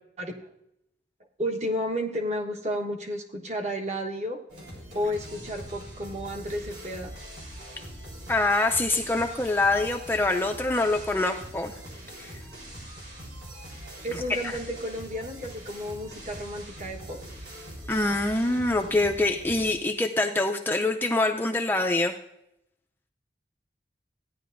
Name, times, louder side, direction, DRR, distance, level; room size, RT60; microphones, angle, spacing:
voice 1, 0.2-0.5 1.4-4.4 4.9-7.1 14.0-17.2, equal, 40° right, 2 dB, 1.2 m, -32 dB
sound 1, 4.5-19.7, equal, 65° right, 3.7 m, -42 dB
voice 2, 8.3-11.7 12.2-12.3 14.1-14.6 17.9-22.1, left 2 dB, 10° left, 3 dB, 0.4 m, -25 dB
15.5 x 10.0 x 2.5 m, 0.81 s
head